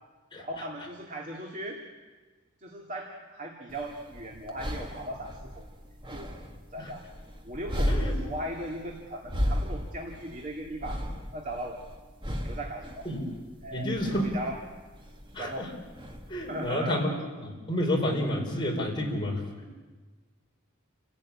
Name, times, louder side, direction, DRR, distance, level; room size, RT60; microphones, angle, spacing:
voice 1, 0.4-1.8 2.6-5.7 6.1-6.3 6.7-7.0 7.4-11.0 11.3-11.8 12.4-13.1 13.6-14.6 15.4-15.7 16.5-17.0, right 1 dB, 40° right, 0 dB, 2.5 m, -38 dB
sound 1, 3.7-16.7, equal, 25° right, 2.0 m, -35 dB
voice 2, 13.7-14.3 15.3-15.7 16.3-17.1 17.4-19.4, left 1 dB, 25° left, -1 dB, 5.1 m, -29 dB
29.0 x 16.0 x 8.8 m, 1.3 s
head